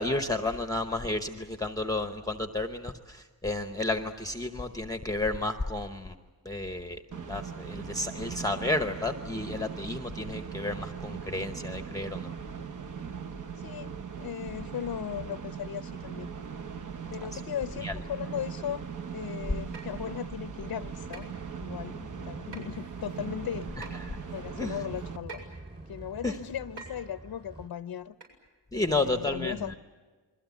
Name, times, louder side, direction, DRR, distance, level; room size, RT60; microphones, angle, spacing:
voice 1, 0.0-6.2 6.4-12.3 17.3-17.4 17.8-17.9 24.1-24.2 24.6-24.7 26.2-26.4 28.7-29.8, left 2 dB, 10° left, 7 dB, 0.9 m, -32 dB
sound 1, 7.1-25.2, right 6 dB, 45° right, 1.0 m, -40 dB
voice 2, 13.6-16.3 17.1-18.8 19.1-23.7 24.3-25.4 25.9-28.2 28.7-29.8, left 9 dB, 55° left, 12 dB, 0.7 m, -37 dB
sound 2, 19.7-20.0 21.1-21.3 22.5-22.8 23.8-23.9 25.3-25.5 26.8-27.0 28.2-28.3 28.9-29.0, right 4 dB, 70° right, 7.3 m, -44 dB
sound 3, 20.4-27.7, right 2 dB, 25° right, 3.3 m, -47 dB
28.5 x 21.5 x 8.3 m, 1.4 s
wide cardioid pair, 150°, 43 cm